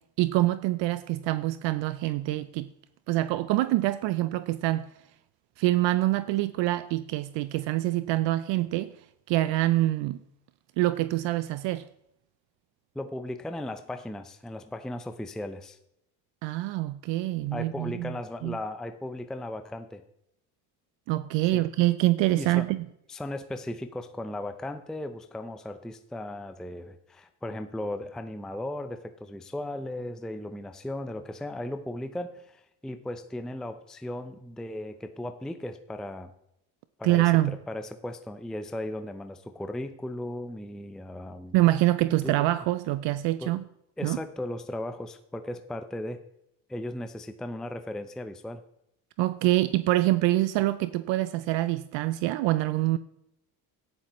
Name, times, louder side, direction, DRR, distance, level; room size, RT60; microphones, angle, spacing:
voice 1, 0.2-2.7 3.1-4.9 5.6-8.9 9.3-10.2 10.8-11.8 16.4-18.1 18.4-18.5 21.1-22.9 37.0-37.6 41.5-43.6 44.0-44.2 49.2-53.0, right 16 dB, 65° right, 14 dB, 0.6 m, -25 dB
voice 2, 12.9-15.8 17.5-20.0 21.4-21.7 22.4-22.7 23.1-36.3 37.0-41.6 42.2-42.4 43.4-43.6 44.0-46.2 46.7-48.6, left 1 dB, ahead, 8 dB, 0.6 m, -36 dB
13.0 x 10.0 x 3.1 m, 0.79 s
supercardioid pair, 90°, 47 cm